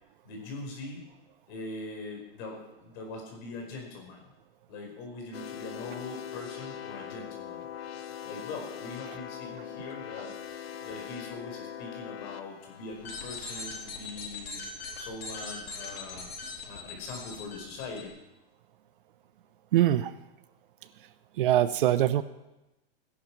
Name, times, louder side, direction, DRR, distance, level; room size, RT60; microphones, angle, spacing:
voice 1, 0.2-1.1 1.5-4.3 4.7-7.7 8.2-10.4 10.8-16.3 16.6-18.1, left 3 dB, 35° left, 1 dB, 4.9 m, -42 dB
sound 1, 5.3-14.3, left 9 dB, 90° left, 1.3 m, -42 dB
sound 2, 12.9-18.0, left 3 dB, 75° left, 4.8 m, -40 dB
voice 2, 19.7-20.1 21.4-22.2, right 12 dB, 60° right, 14 dB, 0.8 m, -23 dB
16.5 x 11.5 x 6.0 m, 0.97 s
supercardioid pair, 165°, 30 cm